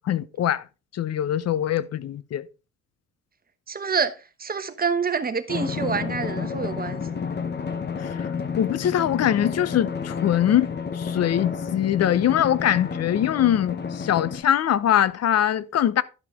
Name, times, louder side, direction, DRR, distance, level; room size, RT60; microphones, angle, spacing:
voice 1, 0.1-0.6 0.9-2.4 8.0-8.3 8.6-16.0, left 10 dB, 55° left, 0.7 m, -22 dB
voice 2, 3.7-4.1 4.4-7.2, right 5 dB, 30° right, 1.1 m, -27 dB
Drum, 5.5-14.4, left 6 dB, 35° left, 1.0 m, -31 dB
11.5 x 5.9 x 3.6 m
cardioid pair, 90°, 30 cm